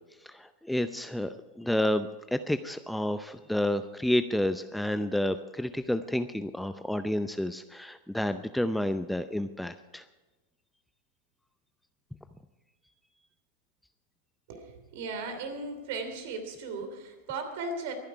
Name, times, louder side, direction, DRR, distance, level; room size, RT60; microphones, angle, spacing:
voice 1, 0.2-10.0, left 1 dB, 5° left, 10 dB, 0.6 m, -30 dB
voice 2, 14.5-17.9, right 3 dB, 60° right, 7 dB, 3.1 m, -37 dB
23.0 x 10.5 x 4.7 m, 1.2 s
figure-of-eight pair, 90°, 0 cm